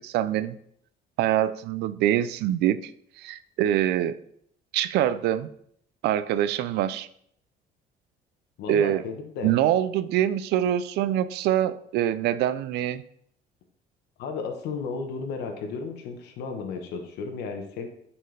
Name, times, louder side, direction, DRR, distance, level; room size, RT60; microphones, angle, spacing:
voice 1, 0.0-0.6 1.2-2.9 3.2-4.1 4.7-5.5 6.0-7.1 8.7-9.0 9.4-13.0, right 11 dB, 80° right, 14 dB, 0.4 m, -24 dB
voice 2, 8.6-9.5 14.2-17.9, left 5 dB, 80° left, 3 dB, 1.1 m, -33 dB
9.0 x 4.3 x 3.3 m, 0.68 s
cardioid pair, 110°, 17 cm